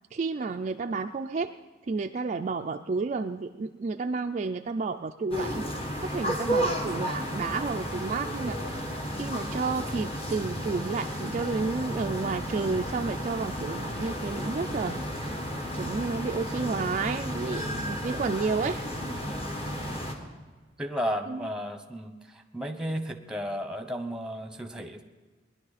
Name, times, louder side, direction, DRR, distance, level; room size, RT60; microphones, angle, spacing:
voice 1, 0.1-1.5 1.9-5.7 6.0-8.6 9.1-15.3 15.7-18.8 21.3-21.5, right 4 dB, 40° right, 6 dB, 0.4 m, -31 dB
sound 1, 5.3-20.1, equal, 35° left, 1.6 m, -33 dB
voice 2, 19.0-19.6 20.8-25.0, equal, 5° right, 6 dB, 1.0 m, -35 dB
20.5 x 11.0 x 4.1 m, 1.3 s
head